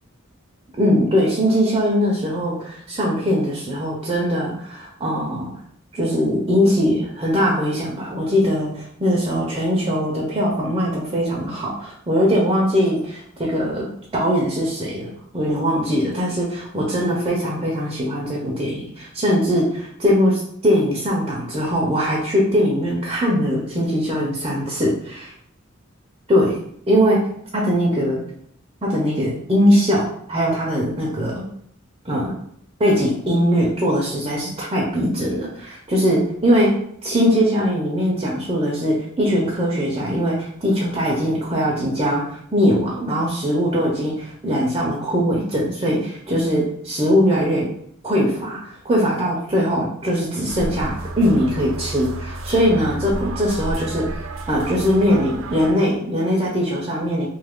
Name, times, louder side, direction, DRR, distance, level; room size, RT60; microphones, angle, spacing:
voice 1, 0.8-5.5 5.9-25.3 26.3-26.6 26.9-27.2 27.5-28.2 28.9-31.4 32.0-32.3 32.8-36.7 37.0-47.7 48.0-54.1 54.5-57.3, equal, 25° right, -3 dB, 0.5 m, -21 dB
sound 1, 50.5-55.7, right 2 dB, 80° right, 0.4 m, -31 dB
2.8 x 2.3 x 3.5 m, 0.68 s
head